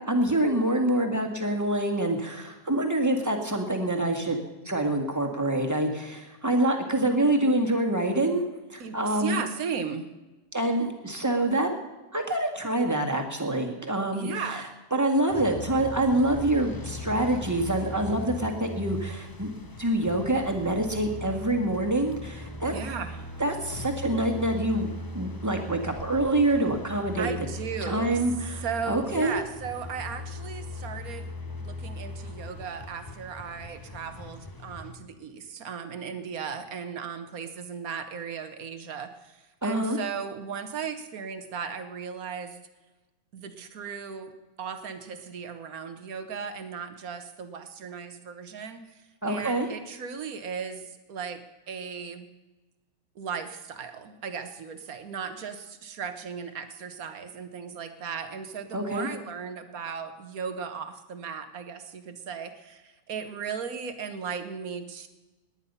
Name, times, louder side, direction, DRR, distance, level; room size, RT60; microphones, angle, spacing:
voice 1, 0.0-4.4 4.7-8.4 8.7-9.4 10.5-11.7 12.1-14.6 14.9-19.5 19.8-22.8 23.4-27.3 27.8-29.4 39.6-40.0 49.2-49.7 58.7-59.1, right 1 dB, 10° right, 2 dB, 1.9 m, -26 dB
voice 2, 8.8-10.1 14.1-14.7 22.7-23.3 27.2-28.2 28.6-31.3 31.6-42.6 43.3-44.3 44.6-51.4 51.7-52.3 53.1-65.1, right 6 dB, 55° right, 9 dB, 1.7 m, -36 dB
sound 1, 15.3-34.9, left 2 dB, 20° left, 0.7 m, -39 dB
19.0 x 10.0 x 5.6 m, 1.1 s
omnidirectional pair, 1.8 m